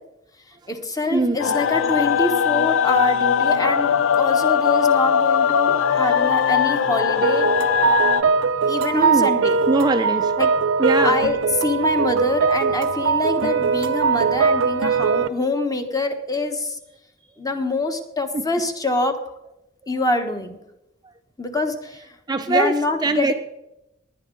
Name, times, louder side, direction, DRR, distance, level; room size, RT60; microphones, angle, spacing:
voice 1, 0.7-7.5 8.7-9.6 10.4-10.5 11.0-16.8 17.4-19.4 19.9-20.6 21.4-22.1 22.5-23.3, left 2 dB, 20° left, 6 dB, 1.2 m, -25 dB
sound 1, 1.4-8.2, left 7 dB, 85° left, 0.5 m, -20 dB
sound 2, 7.2-15.3, right 5 dB, 80° right, 0.5 m, -20 dB
voice 2, 8.9-9.3 9.7-10.3 10.8-11.2 18.3-18.4 22.3-23.3, right 3 dB, 20° right, 7 dB, 0.5 m, -21 dB
19.0 x 10.5 x 3.9 m, 0.89 s
head